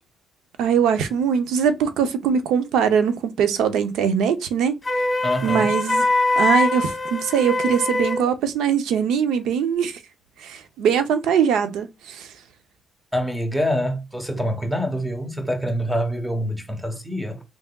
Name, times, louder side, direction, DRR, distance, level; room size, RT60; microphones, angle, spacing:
voice 1, 0.6-4.8 5.4-6.1 6.4-9.9 10.4-12.3, right 7 dB, 85° right, 0.6 m, -21 dB
Wind instrument woodwind instrument, 4.8-8.3, left 2 dB, 20° left, 1.6 m, -22 dB
voice 2, 5.2-5.7 13.1-17.4, equal, 5° right, 0.9 m, -25 dB
3.9 x 3.5 x 2.2 m
cardioid pair, 90°, 0 cm